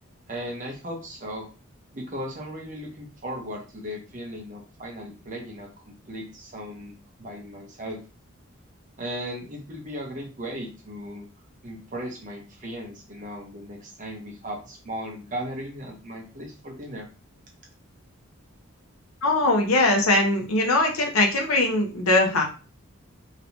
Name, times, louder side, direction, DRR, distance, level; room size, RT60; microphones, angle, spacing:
voice 1, 0.3-1.5 1.9-8.0 9.0-11.2 11.6-17.1, equal, 35° right, 0 dB, 1.0 m, -37 dB
voice 2, 19.2-22.4, left 2 dB, 85° left, 2 dB, 0.9 m, -21 dB
3.1 x 3.0 x 2.8 m, 0.34 s
head